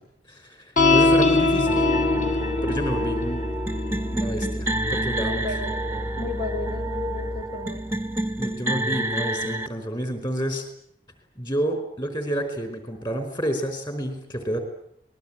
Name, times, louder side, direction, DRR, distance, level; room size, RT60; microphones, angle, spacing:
voice 1, 0.3-1.8 2.6-3.4 3.9-5.6 8.4-10.6 11.4-14.6, equal, 25° left, 7 dB, 4.8 m, -29 dB
sound 1, 0.8-7.4, left 2 dB, 45° left, 4.0 m, -24 dB
sound 2, 1.7-9.7, right 1 dB, 15° right, 1.0 m, -29 dB
voice 2, 5.2-5.7 6.2-7.8, left 3 dB, 65° left, 5 dB, 3.8 m, -33 dB
25.5 x 21.0 x 8.9 m, 0.70 s
head